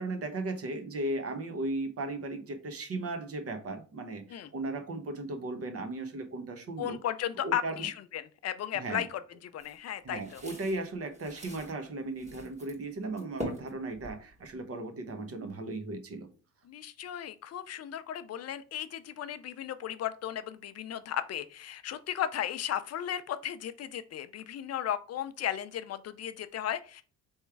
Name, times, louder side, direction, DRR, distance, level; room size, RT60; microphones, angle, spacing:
voice 1, 0.0-7.0 7.4-7.9 8.7-9.1 10.0-16.3, right 2 dB, 50° right, 7 dB, 1.0 m, -36 dB
voice 2, 6.8-10.4 16.6-27.0, left 10 dB, 55° left, 12 dB, 0.5 m, -35 dB
sound 1, 9.6-11.7 12.2-12.8 13.1-14.6, equal, 20° right, 1.6 m, -43 dB
3.6 x 3.1 x 4.6 m, 0.37 s
cardioid pair, 90°, 30 cm